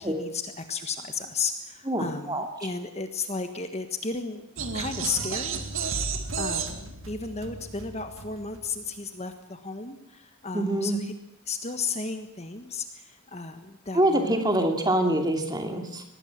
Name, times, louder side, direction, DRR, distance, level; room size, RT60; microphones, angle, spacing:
voice 1, 0.0-4.4 4.7-5.6 6.4-11.1 11.4-14.4, left 4 dB, 30° left, 7 dB, 1.4 m, -34 dB
voice 2, 1.8-2.5 10.5-11.0 13.9-16.0, right 1 dB, 20° right, 4 dB, 2.9 m, -25 dB
sound 1, 4.6-8.7, right 5 dB, 60° right, 2.3 m, -33 dB
24.5 x 20.0 x 7.5 m, 0.78 s
head